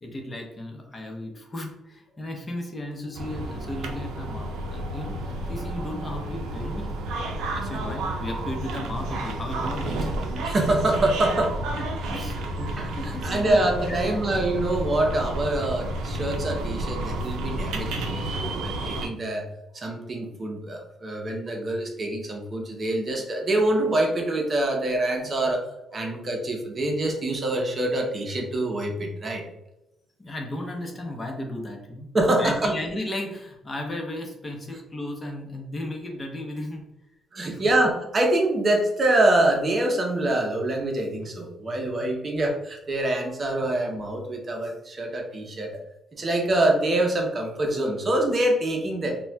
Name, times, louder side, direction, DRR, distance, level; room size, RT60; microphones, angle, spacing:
voice 1, 0.0-6.9 7.3-10.1 12.1-12.4 12.9-14.2 19.8-19.9 25.2-25.6 25.9-26.3 30.2-32.1 32.4-36.8 37.4-37.6 41.8-42.0 46.1-46.2, left 1 dB, 25° left, 2 dB, 0.7 m, -35 dB
sound 1, 3.1-19.1, right 1 dB, 85° right, 0.5 m, -31 dB
voice 2, 10.4-11.6 12.6-19.5 19.7-25.6 25.9-29.4 32.1-32.7 37.3-45.8 46.2-49.2, right 1 dB, 40° right, 2 dB, 0.6 m, -25 dB
4.1 x 2.2 x 2.2 m, 0.88 s
cardioid pair, 90°, 0 cm